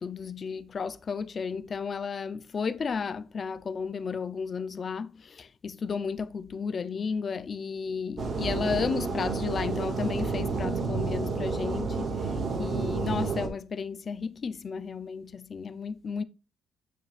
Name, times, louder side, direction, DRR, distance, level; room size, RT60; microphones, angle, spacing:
voice 1, 0.0-16.2, left 5 dB, 45° left, 0.6 m, -33 dB
sound 1, 8.2-13.5, right 4 dB, 50° right, 2.0 m, -30 dB
9.1 x 6.8 x 2.5 m
cardioid pair, 90°, 0 cm